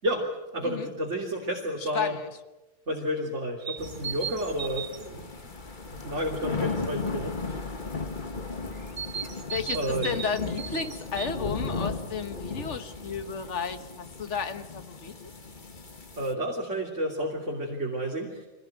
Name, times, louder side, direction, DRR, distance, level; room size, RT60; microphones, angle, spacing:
voice 1, 0.0-2.2 2.9-5.4 6.0-7.6 9.4-10.1 16.2-18.4, equal, 70° right, -2 dB, 3.5 m, -31 dB
voice 2, 1.9-2.3 9.3-15.3, left 6 dB, 70° left, 9 dB, 1.7 m, -33 dB
sound 1, 3.6-5.1 8.8-11.4, right 7 dB, 55° right, 1.2 m, -36 dB
sound 2, 3.8-16.3, left 4 dB, 40° left, 1.7 m, -36 dB
25.0 x 18.5 x 9.2 m, 1.1 s
omnidirectional pair, 1.3 m